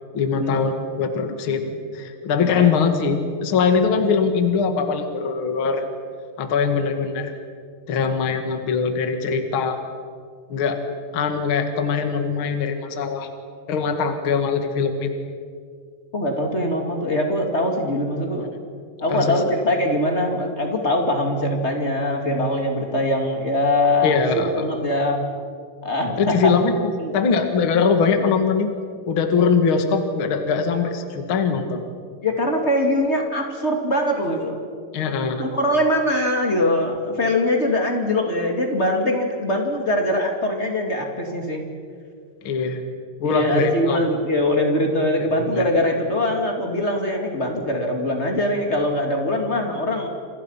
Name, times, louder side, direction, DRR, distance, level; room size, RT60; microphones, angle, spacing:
voice 1, 0.1-1.6 1.9-5.9 6.4-7.3 7.9-9.8 10.5-10.8 11.1-13.3 13.7-15.2 19.1-19.4 24.0-24.7 26.2-28.7 29.1-31.8 34.9-35.5 42.4-42.8 43.2-44.1 45.2-45.3 45.5-45.6, left 5 dB, 75° left, 6 dB, 1.2 m, -22 dB
voice 2, 2.4-2.7 16.1-18.5 19.0-24.2 24.5-25.2 25.8-26.5 27.0-27.1 27.7-28.3 32.2-34.6 35.4-41.6 43.2-50.1, left 1 dB, 30° left, 2 dB, 1.3 m, -22 dB
29.5 x 28.0 x 5.8 m, 2.2 s
omnidirectional pair, 6.0 m